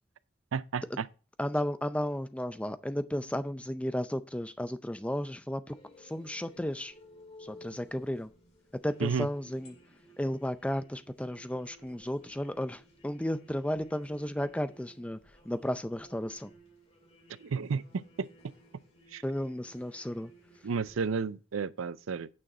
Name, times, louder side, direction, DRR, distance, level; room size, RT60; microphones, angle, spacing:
voice 1, 0.5-1.1 9.0-9.3 17.4-18.3 19.1-19.2 20.6-22.3, right 5 dB, 90° right, 0.5 m, -32 dB
voice 2, 1.4-7.0 7.4-8.3 8.7-9.8 10.2-16.5 19.2-20.3, equal, 5° left, 0.5 m, -34 dB
sound 1, 5.7-21.1, equal, 30° left, 2.1 m, -57 dB
9.4 x 6.3 x 4.2 m
head